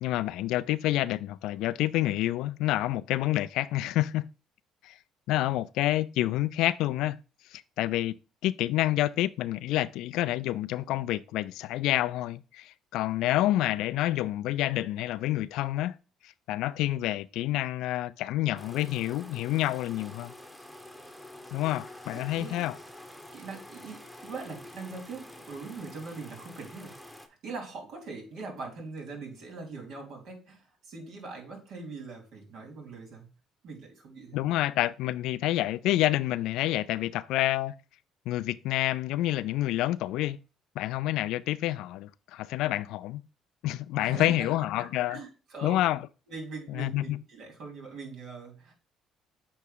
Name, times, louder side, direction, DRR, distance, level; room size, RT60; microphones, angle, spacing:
voice 1, 0.0-4.3 4.8-5.0 5.3-7.2 7.5-8.2 8.4-16.0 16.2-20.3 21.5-22.8 34.3-37.7 38.3-40.4 40.8-43.2 43.6-45.2 45.6-46.0 46.7-47.2, left 15 dB, 75° left, 0.3 m, -28 dB
sound 1, 18.6-27.3, left 1 dB, ahead, 1.2 m, -47 dB
voice 2, 22.1-22.7 23.3-27.0 27.3-33.3 33.6-34.4 44.0-44.5 44.8-45.8 46.3-48.7, right 4 dB, 65° right, 3.0 m, -42 dB
8.4 x 3.1 x 3.9 m
supercardioid pair, 65°, 0 cm